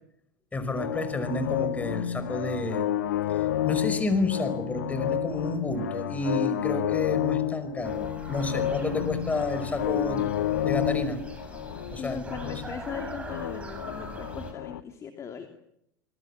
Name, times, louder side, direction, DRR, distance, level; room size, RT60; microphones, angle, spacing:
voice 1, 0.5-3.0 3.3-10.3 10.6-11.2 11.9-12.6, left 2 dB, 15° left, 11 dB, 5.3 m, -30 dB
sound 1, 0.8-14.8, left 12 dB, 70° left, 1.4 m, -30 dB
sound 2, 7.8-14.5, right 2 dB, 10° right, 7.5 m, -42 dB
voice 2, 12.0-15.5, left 7 dB, 30° left, 5 dB, 2.8 m, -39 dB
26.5 x 21.5 x 7.3 m, 0.77 s
hypercardioid pair, 90°, 10 cm